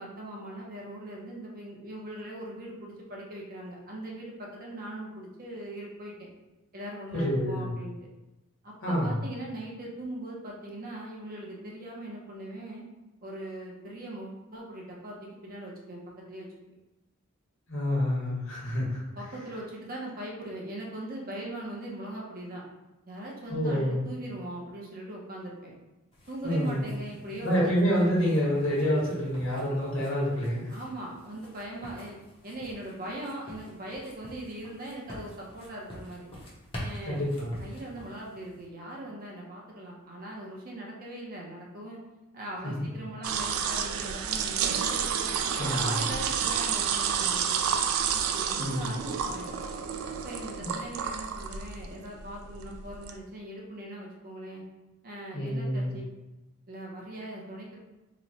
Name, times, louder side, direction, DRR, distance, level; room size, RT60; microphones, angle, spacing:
voice 1, 0.0-6.3 6.7-7.9 8.6-12.8 13.2-16.0 16.3-16.7 19.2-22.6 23.1-25.7 26.3-27.7 30.7-32.2 32.4-36.3 36.8-42.0 42.3-45.0 45.4-47.7 48.1-49.5 50.1-54.6 55.0-56.1 56.7-57.8, right 1 dB, 40° right, -3 dB, 0.7 m, -40 dB
voice 2, 7.1-7.7 8.8-9.2 17.7-19.0 23.5-24.0 26.4-26.8 27.4-30.7 37.0-37.5 45.6-46.0 48.6-48.9 50.6-50.7 55.3-56.0, equal, 60° left, -5 dB, 1.2 m, -27 dB
sound 1, 26.1-38.7, equal, 25° left, 0.7 m, -47 dB
sound 2, 43.2-53.2, right 7 dB, 75° right, 0.3 m, -30 dB
3.0 x 2.2 x 3.9 m, 1.0 s
head